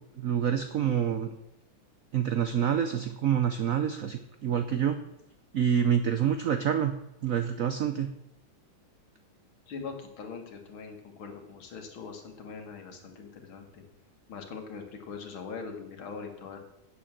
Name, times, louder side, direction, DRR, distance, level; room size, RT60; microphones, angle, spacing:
voice 1, 0.2-1.3 2.1-5.0 5.5-7.0 7.2-8.1, right 9 dB, 75° right, 8 dB, 0.7 m, -27 dB
voice 2, 9.7-13.8 14.3-16.6, left 5 dB, 80° left, 4 dB, 2.4 m, -42 dB
8.9 x 7.4 x 7.4 m, 0.87 s
omnidirectional pair, 2.2 m